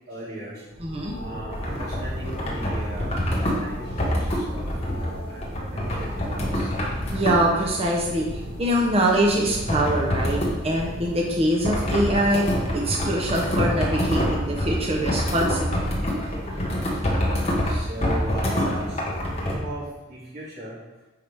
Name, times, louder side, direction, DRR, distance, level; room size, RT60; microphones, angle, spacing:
voice 1, 0.1-0.6 1.2-6.7 16.5-16.6 16.9-17.1 17.6-20.8, right 1 dB, 50° right, -8 dB, 2.6 m, -38 dB
sound 1, 0.7-16.7, equal, 80° right, 1.7 m, -37 dB
voice 2, 0.8-1.2 7.1-15.7, right 1 dB, 30° right, -2 dB, 0.8 m, -24 dB
sound 2, 1.5-7.6 9.7-10.5 11.6-19.6, equal, 30° left, 1.4 m, -26 dB
9.7 x 4.7 x 3.5 m, 1.1 s
head